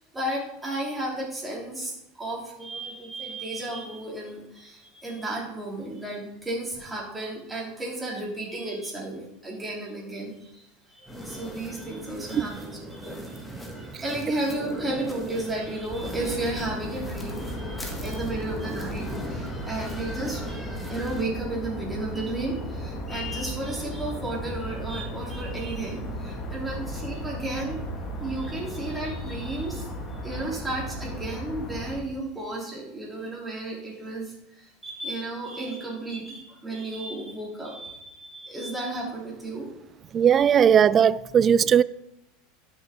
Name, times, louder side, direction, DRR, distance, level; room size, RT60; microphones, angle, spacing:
voice 1, 0.0-10.6 10.9-13.4 13.7-27.8 28.2-29.9 30.2-39.6, right 2 dB, 10° right, 3.4 m, -33 dB
sound 1, 11.1-21.2, equal, 5° left, 1.7 m, -39 dB
sound 2, 15.9-32.0, equal, 30° left, 2.0 m, -35 dB
voice 2, 40.1-41.8, right 8 dB, 30° right, 0.3 m, -18 dB
11.5 x 6.5 x 3.7 m
supercardioid pair, 120°, 0 cm